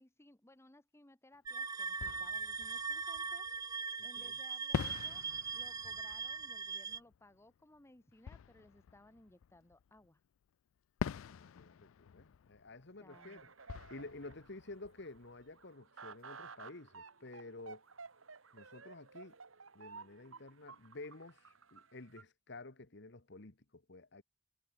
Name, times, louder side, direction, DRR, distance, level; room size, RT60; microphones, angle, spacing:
voice 1, 0.0-3.5 4.0-5.2 5.5-10.2 12.7-13.5, left 1 dB, 15° left, 1.1 m, -62 dB
Fireworks, 1.3-1.4 1.9-3.9 4.7-10.1 11.0-15.7, left 7 dB, 85° left, 0.4 m, -46 dB
sound 1, 1.5-7.0, right 5 dB, 20° right, 0.3 m, -40 dB
voice 2, 4.0-4.3 11.3-13.5 13.9-17.8 18.5-19.3 19.7-24.2, left 2 dB, 60° left, 1.6 m, -51 dB
sound 2, 13.1-22.2, right 5 dB, 90° right, 2.1 m, -54 dB
head